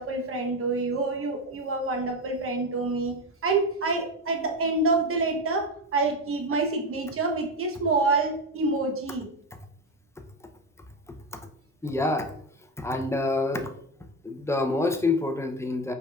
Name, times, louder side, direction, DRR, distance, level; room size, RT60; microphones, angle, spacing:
voice 1, 0.0-3.1 3.4-9.3, right 3 dB, 45° right, 4 dB, 1.0 m, -27 dB
voice 2, 11.8-12.3 12.8-13.7 14.2-15.9, left 2 dB, 10° left, 5 dB, 0.5 m, -26 dB
5.0 x 3.6 x 2.3 m, 0.67 s
cardioid pair, 90°, 30 cm